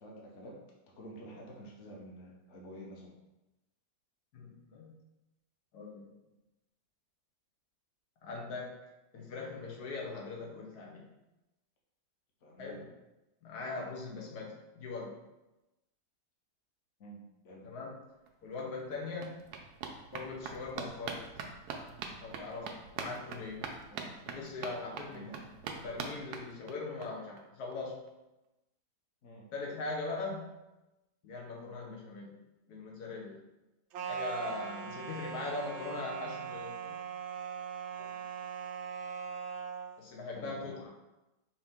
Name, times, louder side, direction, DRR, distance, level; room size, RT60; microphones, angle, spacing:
voice 1, 0.0-3.2 12.4-12.8 17.0-17.7 23.9-24.3 25.1-25.5 29.2-29.5 40.3-40.8, right 1 dB, 55° left, -2 dB, 1.1 m, -49 dB
voice 2, 4.3-5.0 5.7-6.1 8.2-8.8 9.1-11.1 12.6-12.9 13.4-15.2 17.6-18.0 18.4-19.4 20.1-21.2 22.2-23.7 24.2-25.3 25.7-28.0 29.5-30.5 31.2-32.4 32.7-33.4 34.1-37.0 38.0-38.1 40.0-40.9, left 3 dB, 85° left, -1 dB, 1.4 m, -41 dB
sound 1, 18.3-18.4 18.6-27.1 27.4-27.5 27.7-27.8 28.1-28.2, right 5 dB, 90° right, 1.2 m, -43 dB
sound 2, 33.9-39.9, right 7 dB, 70° right, 0.7 m, -40 dB
5.3 x 2.8 x 3.5 m, 0.99 s
omnidirectional pair, 1.6 m